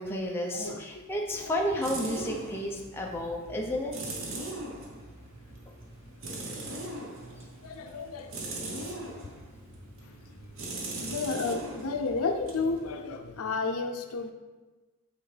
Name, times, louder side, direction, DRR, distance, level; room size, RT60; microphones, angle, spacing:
voice 1, 0.0-3.9, equal, 10° left, 0.6 m, -32 dB
voice 2, 0.5-0.8 1.4-1.5 7.6-8.3 11.0-14.3, left 4 dB, 85° left, 0.6 m, -32 dB
sound 1, 0.9-13.5, right 2 dB, 65° right, 0.9 m, -41 dB
8.0 x 4.3 x 3.3 m
head